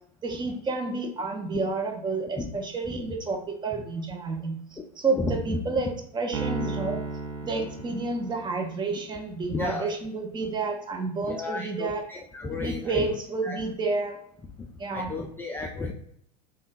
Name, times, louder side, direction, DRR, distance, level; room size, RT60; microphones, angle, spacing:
voice 1, 0.2-4.6 5.0-7.0 7.4-12.0 12.6-14.2 14.8-15.1, right 3 dB, 20° right, 3 dB, 0.6 m, -30 dB
voice 2, 5.1-5.6 9.5-9.9 11.2-13.2 13.4-13.6 14.6-14.7 14.9-15.9, left 3 dB, 10° left, 0 dB, 0.3 m, -33 dB
Piano, 6.3-8.8, right 4 dB, 70° right, 0.7 m, -34 dB
3.5 x 2.3 x 2.5 m, 0.68 s
figure-of-eight pair, 80°, 21 cm